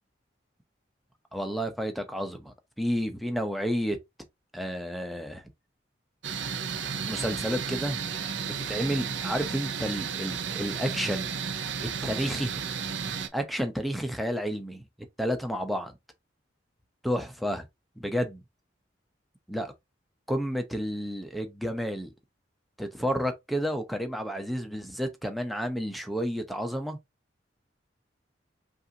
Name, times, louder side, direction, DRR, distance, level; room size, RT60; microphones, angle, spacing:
voice 1, 1.3-4.0 4.5-5.4 7.1-8.0 8.4-11.3 12.0-12.6 13.3-14.8 15.2-15.9 17.0-17.7 18.0-18.4 19.5-19.7 20.3-22.1 22.8-27.0, equal, ahead, 0.6 m, -31 dB
sound 1, 6.2-13.3, right 6 dB, 70° right, 0.6 m, -33 dB
5.4 x 2.5 x 2.7 m
head